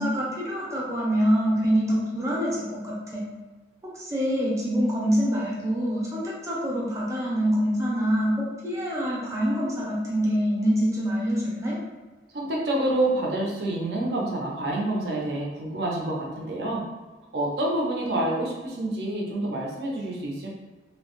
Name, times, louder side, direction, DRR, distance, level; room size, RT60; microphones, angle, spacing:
voice 1, 0.0-3.2 3.8-8.3 8.6-11.8, equal, 15° right, -6 dB, 0.6 m, -25 dB
voice 2, 12.3-16.8 17.3-20.5, right 1 dB, 70° right, -2 dB, 0.6 m, -27 dB
2.8 x 2.1 x 2.9 m, 1.3 s
head